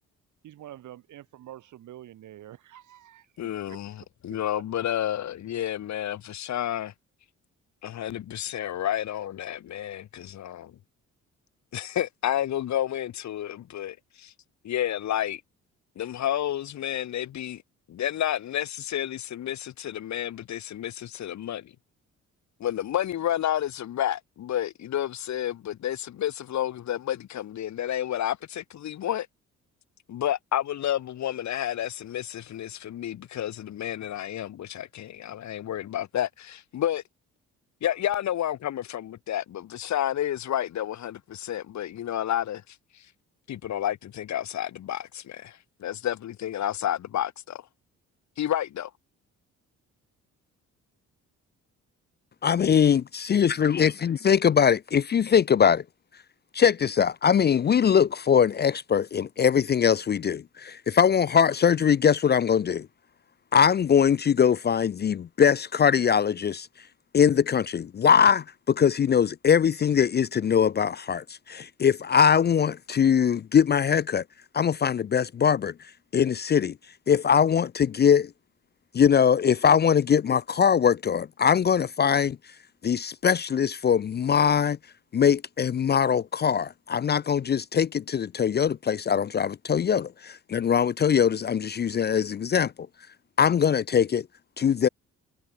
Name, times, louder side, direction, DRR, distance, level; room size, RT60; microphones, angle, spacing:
voice 1, 0.4-3.3 3.7-3.8 4.6-4.7, right 12 dB, 75° right, 3.7 m, -46 dB
voice 2, 3.4-3.9 4.2-6.9 7.8-10.7 11.7-14.3 14.6-15.4 16.0-17.6 17.9-21.7 22.6-29.3 30.1-37.0 37.8-43.0 43.5-47.6 48.4-48.9, left 11 dB, 65° left, 2.0 m, -30 dB
voice 3, 52.4-55.8 56.5-62.9 63.5-66.7 67.1-74.2 74.5-75.7 76.1-76.7 77.1-78.3 78.9-82.4 82.8-84.8 85.1-92.7 93.4-94.3 94.6-94.9, left 7 dB, 35° left, 0.5 m, -22 dB
cardioid pair, 90°, 30 cm